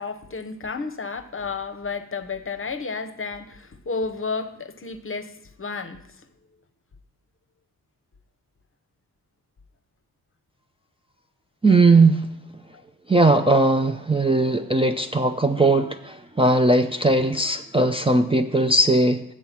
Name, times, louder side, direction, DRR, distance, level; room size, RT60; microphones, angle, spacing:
voice 1, 0.0-6.0 17.2-17.4, left 4 dB, 30° left, 0.8 m, -32 dB
voice 2, 11.6-12.3 13.1-19.2, right 2 dB, 15° right, 0.5 m, -19 dB
7.5 x 6.8 x 5.8 m
cardioid pair, 55°, 40 cm